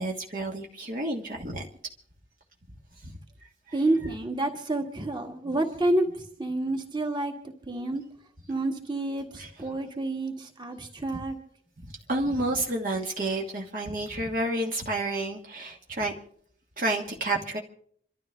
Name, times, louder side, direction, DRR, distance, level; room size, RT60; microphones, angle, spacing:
voice 1, 0.0-1.7 3.0-3.1 9.4-9.7 11.8-16.1 16.8-17.6, right 1 dB, 50° right, 0 dB, 1.4 m, -30 dB
voice 2, 3.7-7.3 7.7-8.0 8.5-11.3, right 2 dB, 25° right, 3 dB, 1.9 m, -29 dB
27.5 x 12.5 x 3.4 m, 0.63 s
head